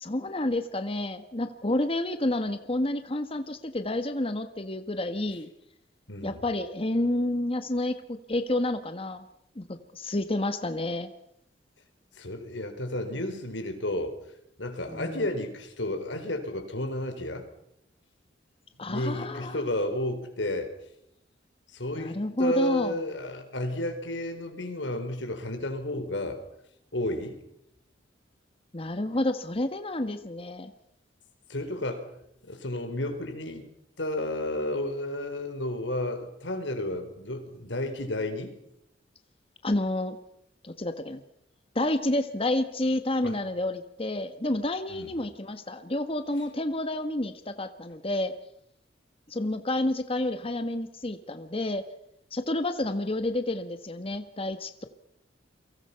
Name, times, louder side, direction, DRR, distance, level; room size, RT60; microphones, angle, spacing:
voice 1, 0.0-5.5 6.2-9.3 9.6-11.1 14.9-15.3 18.8-19.6 22.0-23.0 28.7-30.7 39.6-40.2 40.6-41.2 41.7-48.3 49.3-51.8 52.3-54.8, left 1 dB, 30° left, 9 dB, 1.4 m, -29 dB
voice 2, 6.1-6.4 12.2-14.2 14.6-17.5 18.9-20.7 21.7-26.4 26.9-27.4 31.5-32.1 32.4-33.7 34.0-38.5 43.2-43.4 44.9-45.1, left 1 dB, 75° left, 6 dB, 4.5 m, -32 dB
30.0 x 23.5 x 5.8 m, 0.77 s
head